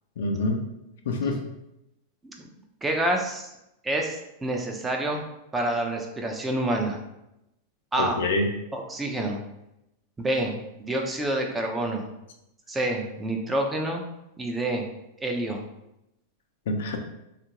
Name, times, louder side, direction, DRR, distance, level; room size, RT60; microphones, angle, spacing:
voice 1, 0.2-0.6 1.1-1.4 8.0-8.5 16.7-17.0, left 2 dB, 75° left, 4 dB, 0.4 m, -26 dB
voice 2, 2.8-3.5 3.8-5.3 5.5-7.0 7.9-8.2 8.7-9.4 10.2-12.0 12.7-14.0 14.4-14.9 15.2-15.6, right 1 dB, 15° right, 2 dB, 0.5 m, -28 dB
2.7 x 2.4 x 2.9 m, 0.87 s
hypercardioid pair, 115°, 0 cm